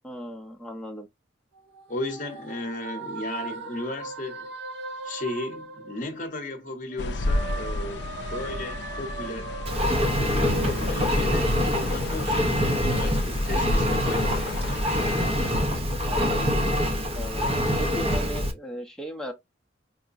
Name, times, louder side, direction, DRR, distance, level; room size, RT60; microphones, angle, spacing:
voice 1, 0.0-1.1 16.0-16.5 17.2-19.3, equal, 5° left, 0.7 m, -36 dB
sound 1, 1.6-6.5 6.9-11.7, right 3 dB, 70° right, 0.6 m, -39 dB
voice 2, 1.9-4.5 5.0-9.5 10.2-14.5, left 2 dB, 45° left, 0.8 m, -35 dB
sound 2, 7.0-15.6, left 2 dB, 65° left, 0.4 m, -32 dB
Engine, 9.7-18.5, equal, 35° right, 0.7 m, -25 dB
4.7 x 2.1 x 2.5 m
head